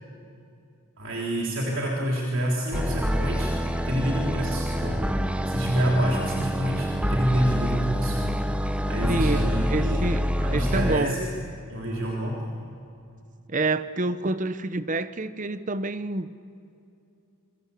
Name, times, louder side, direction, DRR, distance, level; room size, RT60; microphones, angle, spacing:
voice 1, 1.0-5.1 5.5-8.4 8.8-10.1 10.4-11.3 11.7-12.6, right 1 dB, 60° right, -2 dB, 3.5 m, -28 dB
sound 1, 2.7-11.0, equal, 5° right, 0.9 m, -26 dB
voice 2, 9.1-11.1 13.5-16.3, right 2 dB, 35° right, 13 dB, 0.9 m, -28 dB
27.0 x 23.5 x 8.4 m, 2.6 s
head